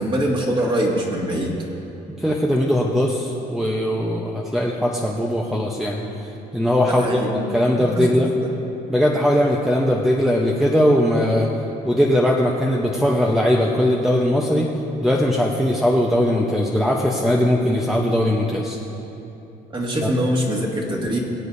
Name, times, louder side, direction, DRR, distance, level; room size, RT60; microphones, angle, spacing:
voice 1, 0.0-1.6 6.9-7.5 7.9-8.5 19.7-21.2, equal, 30° right, -2 dB, 2.1 m, -23 dB
voice 2, 2.2-6.0 6.5-8.3 8.9-11.5 11.8-14.7 15.0-18.8 20.0-20.1, equal, ahead, -2 dB, 0.8 m, -20 dB
23.5 x 8.1 x 2.7 m, 3.0 s
cardioid pair, 110°, 17 cm